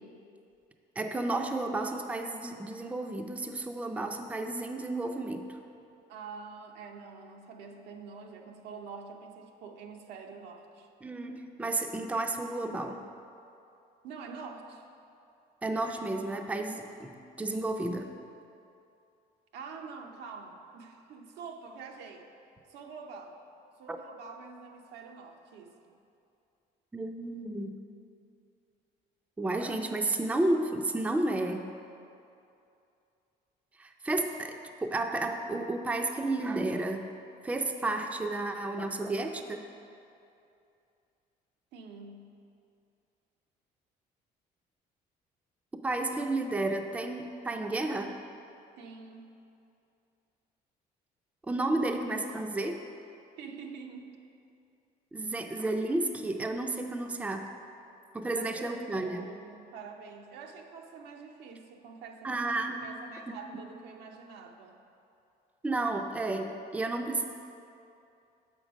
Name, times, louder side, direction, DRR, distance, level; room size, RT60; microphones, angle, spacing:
voice 1, 1.0-5.6 11.0-13.0 15.6-18.1 23.9-24.0 26.9-27.7 29.4-31.7 33.8-37.1 37.4-39.6 45.8-48.1 51.5-52.8 55.1-57.5 58.1-59.3 62.2-62.8 63.3-63.4 65.6-67.2, right 2 dB, 10° right, 4 dB, 0.4 m, -32 dB
voice 2, 6.1-10.9 14.0-14.9 19.5-22.3 22.7-23.4 23.8-25.9 41.7-42.3 48.8-49.4 53.4-54.2 58.3-62.5 62.8-64.8, right 5 dB, 85° right, 3 dB, 0.7 m, -46 dB
6.9 x 5.2 x 5.1 m, 2.6 s
cardioid pair, 110°, 17 cm